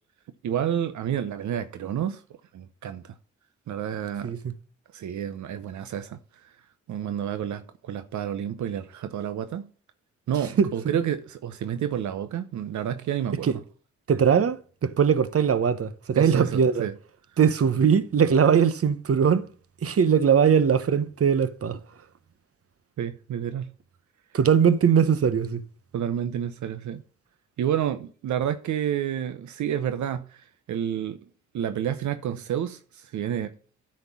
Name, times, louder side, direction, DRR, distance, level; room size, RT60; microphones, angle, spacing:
voice 1, 0.4-2.2 2.5-3.2 3.7-4.3 4.9-6.5 6.9-9.7 10.3-13.6 16.2-16.9 23.0-23.7 25.9-27.0 27.6-31.2 31.5-33.5, right 9 dB, 80° right, 0.8 m, -29 dB
voice 2, 4.2-4.5 10.6-11.0 13.4-13.5 14.1-16.9 17.4-19.5 19.8-21.8 24.3-25.6, right 7 dB, 50° right, 1.0 m, -21 dB
9.6 x 4.4 x 7.0 m
supercardioid pair, 50°, 29 cm